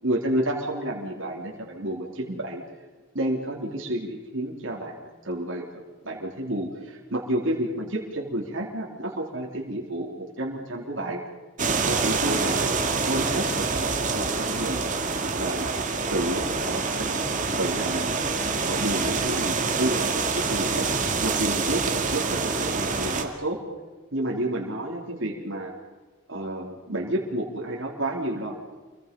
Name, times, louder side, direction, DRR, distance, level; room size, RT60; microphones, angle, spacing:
voice 1, 0.0-2.6 3.1-5.7 6.0-11.2 11.9-12.8 13.1-14.8 15.4-15.8 16.1-17.2 17.6-18.1 18.6-23.6 24.1-25.7 26.3-28.8, right 1 dB, 65° right, -2 dB, 3.6 m, -30 dB
sound 1, 11.6-23.2, right 4 dB, 35° right, 2.2 m, -26 dB
28.5 x 22.5 x 5.4 m, 1.3 s
head